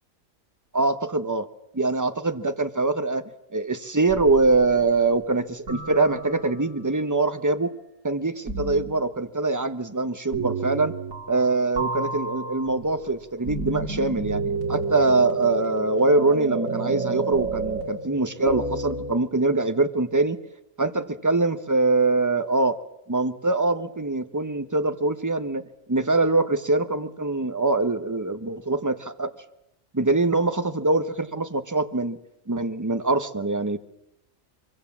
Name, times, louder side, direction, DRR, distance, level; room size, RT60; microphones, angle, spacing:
voice 1, 0.7-1.5 1.7-3.2 3.5-7.7 8.0-10.9 11.3-14.4 14.7-20.4 20.8-22.8 23.1-25.6 25.9-29.3 29.9-32.2 32.5-33.8, right 3 dB, 15° right, 9 dB, 0.9 m, -23 dB
sound 1, 4.1-4.9 5.7-6.7 8.5-9.0 10.3-11.5 11.8-19.1, right 3 dB, 85° right, 2.9 m, -31 dB
24.0 x 23.5 x 7.3 m, 0.85 s
omnidirectional pair, 1.4 m